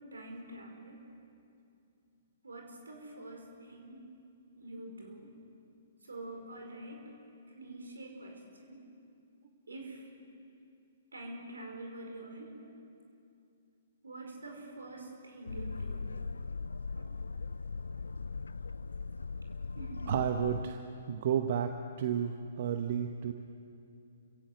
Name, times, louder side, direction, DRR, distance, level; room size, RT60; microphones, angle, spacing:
voice 1, 0.1-1.1 2.4-4.2 4.6-5.4 6.0-7.1 7.5-8.9 9.7-10.1 11.1-12.6 14.0-16.1 19.7-20.1, right 2 dB, 80° right, 2 dB, 5.1 m, -46 dB
Boat Water vehicle, 15.5-20.6, left 4 dB, 80° left, 0.5 m, -39 dB
voice 2, 20.1-20.8 21.1-21.7 22.0-23.3, right 8 dB, 50° right, 6 dB, 1.1 m, -31 dB
29.5 x 16.5 x 8.1 m, 2.6 s
figure-of-eight pair, 120°, 0 cm